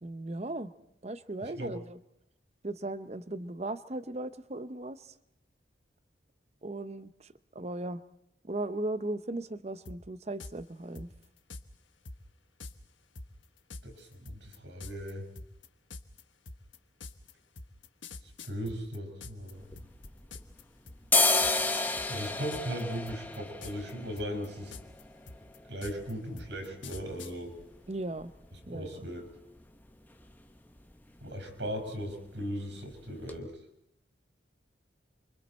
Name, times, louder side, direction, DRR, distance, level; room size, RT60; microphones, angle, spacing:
voice 1, 0.0-0.7 1.0-2.0 2.6-5.1 6.6-8.0 8.4-11.1 27.9-28.3 28.7-29.1, right 2 dB, 35° right, 13 dB, 0.7 m, -37 dB
voice 2, 1.4-1.7 13.8-15.3 18.4-19.7 22.1-24.7 25.7-27.5 28.7-29.3 31.2-33.6, equal, 75° right, 4 dB, 5.5 m, -38 dB
sound 1, 9.9-10.0 10.4-10.5 11.0-11.6 12.1-12.2 12.6-12.7 13.2-19.5 19.8-20.6 20.9-21.2 21.4-21.7 22.0-22.8 23.1-23.9 24.2-27.3, left 3 dB, 90° left, 1.3 m, -45 dB
sound 2, 19.5-20.6 20.9-28.7 29.0-29.1 29.3-29.9 30.2-30.4 30.7-30.9 31.2-31.9 32.3-32.4 32.9-33.0 33.3-33.4, left 3 dB, 10° left, 1.0 m, -32 dB
28.5 x 25.0 x 4.4 m, 0.79 s
head